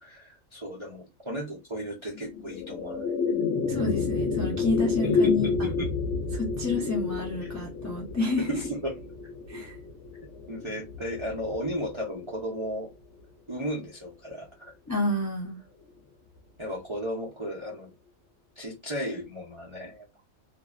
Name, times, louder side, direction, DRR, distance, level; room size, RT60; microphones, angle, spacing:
voice 1, 0.0-3.1 5.0-5.9 8.4-8.9 10.5-12.9 13.5-14.7 16.6-17.9 18.6-20.2, equal, 40° right, 0.4 m, -35 dB
sound 1, 2.1-12.6, left 4 dB, 65° left, 0.8 m, -30 dB
voice 2, 3.7-5.7 6.3-8.7 9.5-9.8 14.9-15.6, left 2 dB, 25° left, 0.3 m, -29 dB
2.5 x 2.1 x 2.4 m
omnidirectional pair, 1.4 m